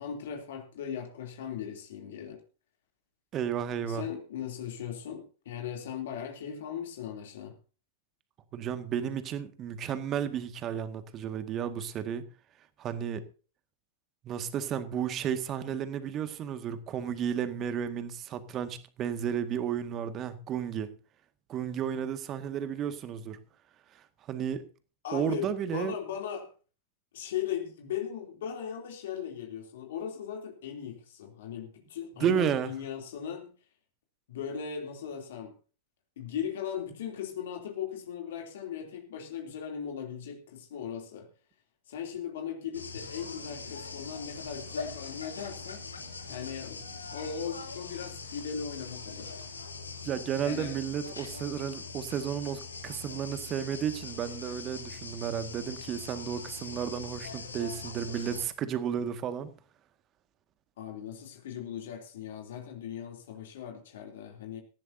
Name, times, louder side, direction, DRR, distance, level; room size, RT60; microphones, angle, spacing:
voice 1, 0.0-2.4 3.9-7.5 25.0-26.5 27.1-33.5 34.3-35.5 36.2-41.3 41.9-45.8 46.3-46.8 47.1-49.3 50.4-50.7 60.8-64.6, left 8 dB, 55° left, 3.1 m, -38 dB
voice 2, 3.3-4.0 8.5-12.3 12.8-13.2 14.2-20.9 21.5-23.4 24.3-24.6 25.1-25.9 32.2-32.7 50.0-59.5, right 8 dB, 30° right, 1.9 m, -32 dB
sound 1, 42.7-58.4, left 4 dB, 75° left, 2.9 m, -42 dB
18.0 x 15.5 x 2.8 m
figure-of-eight pair, 95°, 0 cm